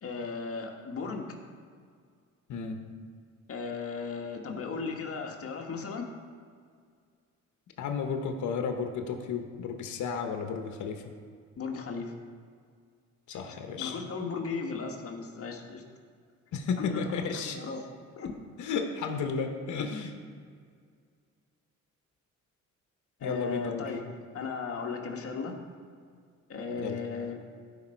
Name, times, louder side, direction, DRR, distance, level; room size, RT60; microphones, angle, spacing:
voice 1, 0.0-1.4 3.5-6.1 11.6-12.1 13.3-15.8 16.8-17.8 18.2-18.3 23.2-24.0 24.3-25.6 26.5-27.3, left 4 dB, 50° left, 2 dB, 1.6 m, -36 dB
voice 2, 2.5-2.8 7.8-11.0 13.3-14.0 16.5-17.6 18.6-20.1 23.2-23.9 26.8-27.0, left 5 dB, 75° left, 5 dB, 1.1 m, -33 dB
15.5 x 5.3 x 4.5 m, 2.1 s
cardioid pair, 90°, 30 cm